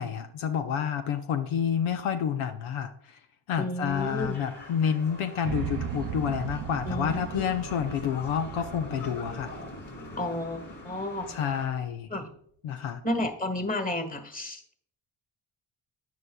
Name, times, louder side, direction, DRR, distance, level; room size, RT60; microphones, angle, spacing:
voice 1, 0.0-2.9 3.5-9.5 11.3-12.1 12.6-13.0, left 8 dB, 80° left, 7 dB, 0.7 m, -29 dB
voice 2, 3.6-4.4 6.9-7.5 10.2-11.3 12.1-12.3 13.0-14.8, left 1 dB, 15° left, 8 dB, 1.5 m, -32 dB
sound 1, 3.9-11.7, left 2 dB, 40° left, 3.3 m, -44 dB
sound 2, 5.4-11.5, right 8 dB, 45° right, 0.6 m, -38 dB
9.3 x 9.1 x 2.3 m, 0.63 s
supercardioid pair, 45°, 49 cm